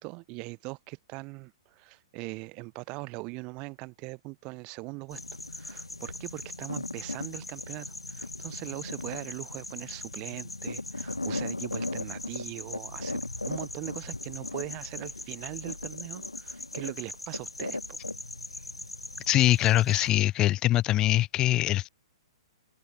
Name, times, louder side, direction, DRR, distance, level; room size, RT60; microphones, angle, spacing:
voice 1, 0.0-5.2 5.5-13.2 13.5-18.0, right 27 dB, 35° right, 2.8 m, -41 dB
sound 1, 5.1-20.1, left 2 dB, 90° left, 0.6 m, -38 dB
voice 2, 19.3-21.9, left 14 dB, 25° left, 1.3 m, -23 dB
open air
figure-of-eight pair, 115°, 3 cm